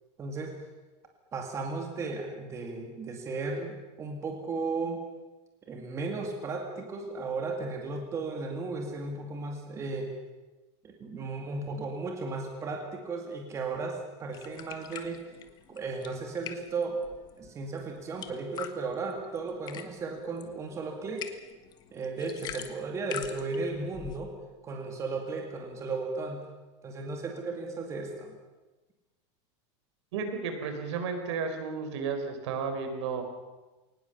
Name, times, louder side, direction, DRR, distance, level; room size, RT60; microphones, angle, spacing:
voice 1, 0.2-0.5 1.3-5.0 5.6-10.1 10.8-15.2 15.7-17.0 17.4-21.3 21.9-24.3 24.6-26.5 26.8-28.3, right 3 dB, 20° right, 2 dB, 2.3 m, -35 dB
sound 1, 14.3-24.2, left 9 dB, 25° left, 1.4 m, -45 dB
voice 2, 30.1-33.2, right 5 dB, 70° right, 6 dB, 4.5 m, -33 dB
22.5 x 19.5 x 7.0 m, 1.2 s
supercardioid pair, 165°, 15 cm